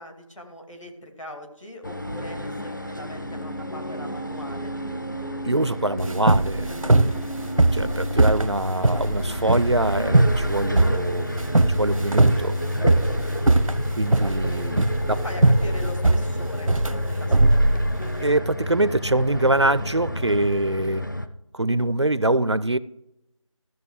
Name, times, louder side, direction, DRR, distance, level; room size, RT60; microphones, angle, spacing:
voice 1, 0.0-4.7 13.4-13.7 15.0-16.7 17.0-17.8, left 1 dB, 65° left, 2.4 m, -40 dB
sound 1, 1.8-21.3, equal, 35° left, 0.5 m, -30 dB
sound 2, 2.1-14.0 14.3-20.8, left 1 dB, 85° left, 1.7 m, -42 dB
voice 2, 5.4-6.8 7.7-11.3 11.7-13.0 13.9-15.2 18.2-21.0 21.5-22.8, right 2 dB, 55° right, 0.4 m, -24 dB
sound 3, 6.0-18.2, right 2 dB, 80° right, 0.7 m, -20 dB
14.5 x 6.6 x 4.8 m
figure-of-eight pair, 175°, 17 cm